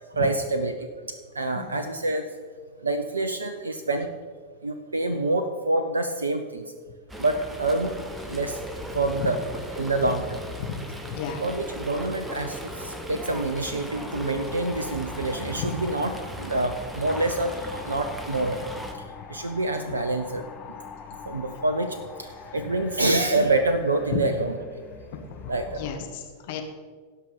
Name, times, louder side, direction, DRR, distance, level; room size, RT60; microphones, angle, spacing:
voice 1, 0.0-2.3 2.8-4.1 4.6-6.7 7.2-8.0 8.2-8.6 8.9-9.4 9.7-10.4 11.4-16.1 16.4-18.6 19.0-20.4 21.2-24.8 25.5-25.8, right 2 dB, 75° right, 8 dB, 0.7 m, -27 dB
sound 1, 7.1-26.0, left 4 dB, 30° left, 1.2 m, -43 dB
Fowl, 7.1-18.9, right 1 dB, 10° right, 1.2 m, -38 dB
voice 2, 11.1-11.4 15.6-15.7 24.1-24.2 25.3-25.4 25.7-26.6, left 9 dB, 50° left, 4 dB, 1.5 m, -33 dB
16.5 x 5.6 x 5.2 m, 1.5 s
figure-of-eight pair, 90°, 0 cm